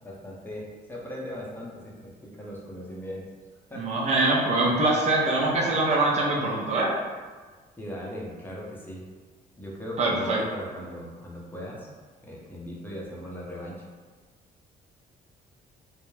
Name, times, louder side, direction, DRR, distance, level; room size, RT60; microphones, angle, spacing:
voice 1, 0.0-3.3 3.7-4.0 7.8-9.0 9.6-11.9 12.2-13.8, equal, 10° left, -4 dB, 0.7 m, -38 dB
voice 2, 3.7-6.9 10.0-10.4, right 2 dB, 40° right, -4 dB, 0.6 m, -23 dB
2.3 x 2.0 x 3.1 m, 1.4 s
cardioid pair, 90°, 18 cm